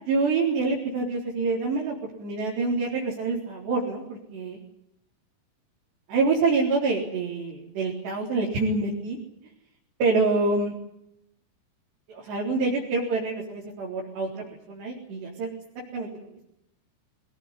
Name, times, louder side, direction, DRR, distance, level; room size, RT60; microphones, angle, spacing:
voice 1, 0.1-4.6 6.1-9.2 10.0-10.8 12.1-15.5 15.9-16.2, right 3 dB, 85° right, -3 dB, 6.2 m, -26 dB
24.0 x 19.0 x 10.0 m, 0.79 s
omnidirectional pair, 4.8 m